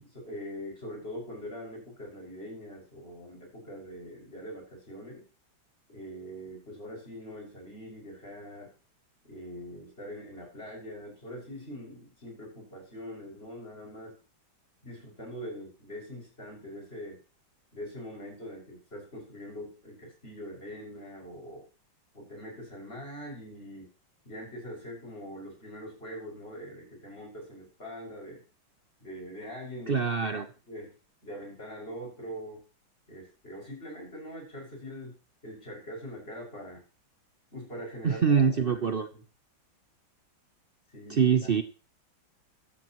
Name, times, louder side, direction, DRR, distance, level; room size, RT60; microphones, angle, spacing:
voice 1, 0.0-5.2 5.9-8.7 9.2-14.1 14.8-17.2 17.7-21.6 22.1-23.9 24.3-28.4 29.0-30.1 30.4-30.9 31.2-32.6 33.1-35.1 35.4-36.8 37.5-39.2 40.9-41.5, equal, 30° left, 0 dB, 6.9 m, -43 dB
voice 2, 29.9-30.5 38.0-39.1 41.2-41.6, right 6 dB, 70° right, 9 dB, 0.5 m, -24 dB
13.5 x 12.5 x 3.1 m, 0.34 s
omnidirectional pair, 2.2 m